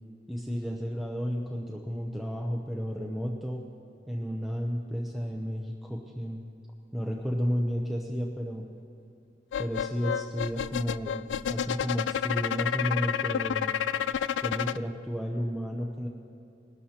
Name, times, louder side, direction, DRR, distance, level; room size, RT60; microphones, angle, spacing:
voice 1, 0.3-3.6 4.1-6.4 6.9-8.7 9.6-13.7 14.4-16.1, equal, ahead, -1 dB, 0.6 m, -32 dB
sound 1, 9.5-14.8, left 8 dB, 80° left, 0.3 m, -30 dB
20.5 x 11.5 x 2.9 m, 2.7 s
head